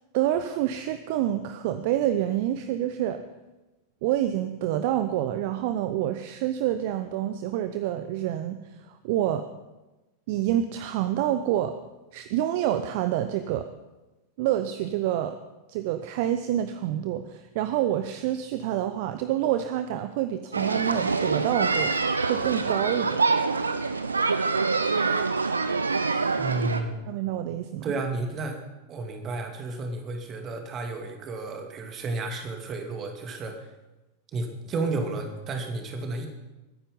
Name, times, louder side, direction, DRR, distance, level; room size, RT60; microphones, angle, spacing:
voice 1, 0.1-3.2 4.0-8.6 8.8-9.5 10.3-11.8 12.1-13.7 14.4-15.4 15.7-21.9 22.3-23.2 27.1-27.9, right 12 dB, 50° right, 10 dB, 0.8 m, -27 dB
sound 1, 20.5-26.8, right 4 dB, 75° right, 1.0 m, -25 dB
voice 2, 26.4-27.1 27.8-28.6 28.9-33.7 34.3-36.3, right 3 dB, 30° right, 4 dB, 2.7 m, -32 dB
22.0 x 10.0 x 5.4 m, 1.1 s
figure-of-eight pair, 90°, 0 cm